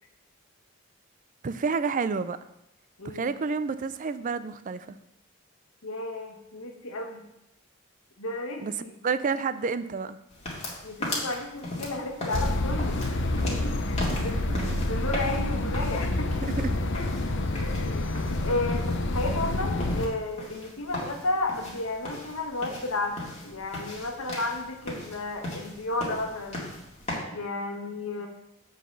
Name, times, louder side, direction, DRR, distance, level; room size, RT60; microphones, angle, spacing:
voice 1, 1.4-2.4 3.1-5.0 8.6-8.7 9.0-10.2 14.5-14.9 15.6-15.8 16.4-16.8, right 5 dB, 40° right, 13 dB, 0.4 m, -30 dB
voice 2, 3.0-3.3 5.8-7.2 8.2-8.9 10.8-14.5 14.9-16.3 16.9-17.1 17.6-18.1 18.4-23.2 23.4-26.7 27.3-28.3, left 2 dB, 85° left, 2 dB, 1.3 m, -33 dB
sound 1, 10.3-27.2, left 1 dB, 30° left, 2.0 m, -38 dB
sound 2, 12.3-20.1, left 2 dB, 60° left, 0.7 m, -28 dB
7.5 x 4.0 x 6.7 m, 0.86 s
head